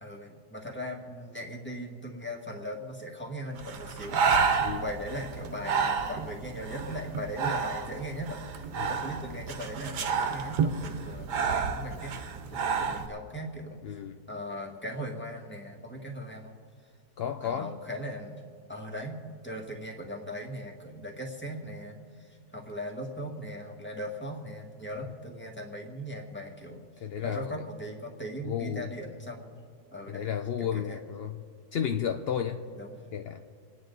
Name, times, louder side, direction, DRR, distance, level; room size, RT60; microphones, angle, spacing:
voice 1, 0.0-14.0 14.3-16.5 17.4-26.9 27.2-29.7 29.9-30.3 30.6-31.0 32.8-33.0, equal, 5° left, 0 dB, 1.7 m, -39 dB
Breathing, 3.6-13.1, right 5 dB, 90° right, 1.6 m, -30 dB
voice 2, 13.8-14.2 17.2-17.8 27.0-27.6 28.4-28.9 30.1-31.4 31.7-32.6 33.1-33.4, left 8 dB, 70° left, 6 dB, 0.5 m, -32 dB
28.5 x 9.8 x 3.9 m, 2.1 s
omnidirectional pair, 1.7 m